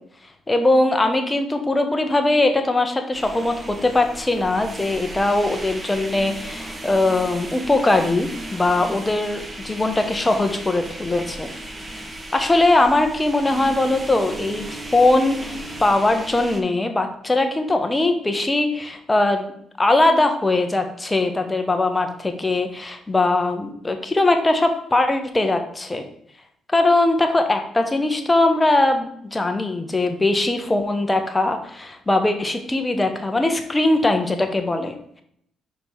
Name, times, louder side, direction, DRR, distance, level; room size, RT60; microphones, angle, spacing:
voice 1, 0.5-11.5 12.3-19.5 19.8-26.0 26.7-34.9, left 2 dB, 15° left, 5 dB, 1.1 m, -20 dB
sound 1, 3.1-16.6, right 1 dB, 25° right, 1.1 m, -36 dB
5.3 x 5.1 x 4.7 m, 0.69 s
cardioid pair, 90°, 0 cm